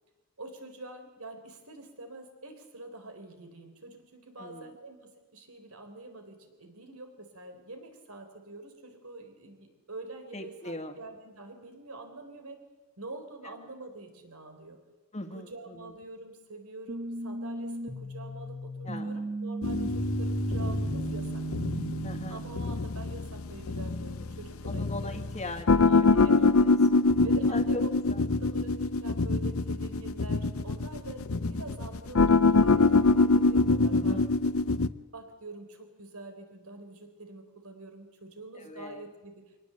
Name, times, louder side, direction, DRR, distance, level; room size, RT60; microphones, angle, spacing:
voice 1, 0.4-12.6 13.0-14.8 15.3-21.4 22.3-25.2 26.2-26.5 27.2-27.9 28.3-34.2 35.1-39.4, right 2 dB, 75° right, 6 dB, 4.1 m, -45 dB
voice 2, 4.4-4.8 10.3-11.0 15.1-15.9 18.8-19.2 22.0-22.4 24.7-27.1 27.5-28.3 33.9-34.3 38.5-39.1, left 1 dB, 30° left, 7 dB, 1.9 m, -40 dB
sound 1, 16.9-22.8, right 1 dB, 40° right, 2.6 m, -35 dB
sound 2, 19.6-34.9, left 3 dB, 65° left, 0.7 m, -25 dB
24.0 x 19.0 x 8.0 m, 1.2 s
head